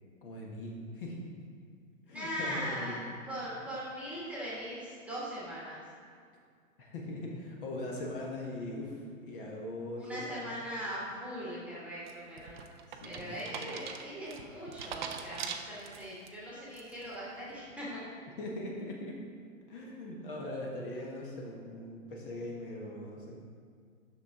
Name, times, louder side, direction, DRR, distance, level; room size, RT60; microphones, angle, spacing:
voice 1, 0.2-1.2 2.1-3.0 6.8-10.5 12.9-13.7 18.4-19.2 19.7-23.3, left 1 dB, 40° left, -1 dB, 1.4 m, -41 dB
voice 2, 2.1-5.8 10.0-12.5 13.0-18.0, equal, 5° right, -7 dB, 1.5 m, -40 dB
sound 1, 12.1-16.3 16.7-17.2, right 7 dB, 35° right, 0.5 m, -42 dB
9.5 x 6.5 x 3.6 m, 2.1 s
hypercardioid pair, 140°, 41 cm